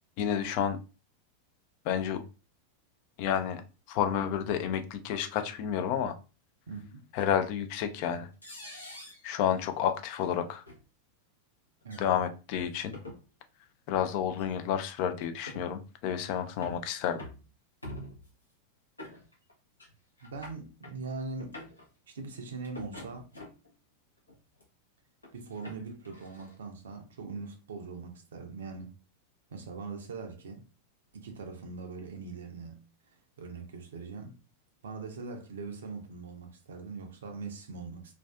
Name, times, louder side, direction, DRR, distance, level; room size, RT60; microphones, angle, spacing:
voice 1, 0.2-0.8 1.8-2.2 3.2-3.6 3.9-6.2 7.1-8.3 9.2-10.6 12.0-12.9 13.9-17.2, left 9 dB, 45° left, 0.3 m, -30 dB
voice 2, 6.7-7.0 11.8-12.1 20.2-21.6 22.1-23.3 25.3-28.9 29.5-30.6 31.1-32.8 33.4-34.3 34.8-38.1, right 4 dB, 65° right, 0.5 m, -41 dB
Cottage Wooden Doors - Assorted Squeaks and Creaks, 7.2-7.3 8.4-9.3 10.1-10.3 10.7-10.8 11.8-12.1 12.7-13.2 14.4-14.5 15.2-15.7 16.3-16.8 17.2-17.5 17.8-18.3 19.0-19.5 19.8-19.9 20.2-20.9 21.3-21.8 22.6-23.7 24.3-24.6 25.2-26.5, left 1 dB, 80° left, 0.7 m, -46 dB
2.4 x 2.3 x 2.2 m
figure-of-eight pair, 90°, 0 cm